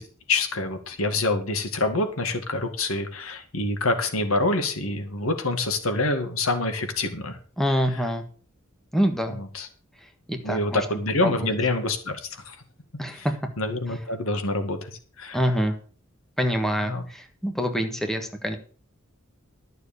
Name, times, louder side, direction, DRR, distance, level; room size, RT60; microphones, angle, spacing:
voice 1, 0.3-7.4 9.3-9.7 10.4-12.6 13.1-13.3 13.6-14.9 15.2-15.4 16.9-17.0, left 2 dB, 80° left, 7 dB, 2.0 m, -26 dB
voice 2, 7.6-8.2 8.9-9.4 10.3-10.8 11.2-11.5 13.0-13.3 15.3-15.7 16.4-18.6, equal, ahead, 5 dB, 1.4 m, -25 dB
12.0 x 6.7 x 6.8 m, 0.41 s
head